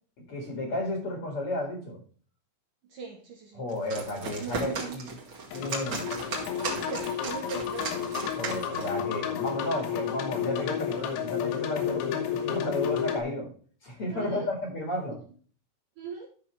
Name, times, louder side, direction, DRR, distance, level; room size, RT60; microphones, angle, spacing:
voice 1, 0.3-2.0 3.5-5.1 5.5-6.0 8.3-13.5 13.8-15.2, left 1 dB, 45° left, 1 dB, 2.1 m, -33 dB
voice 2, 2.8-3.6 4.2-5.0 5.9-6.0 6.8-8.3 14.1-14.5 16.0-16.3, right 5 dB, 75° right, 1 dB, 1.9 m, -40 dB
sound 1, 3.7-9.0, right 3 dB, 40° right, 1.8 m, -36 dB
sound 2, 5.5-13.2, left 9 dB, 80° left, 3.5 m, -31 dB
13.5 x 5.8 x 3.3 m, 0.43 s
omnidirectional pair, 5.4 m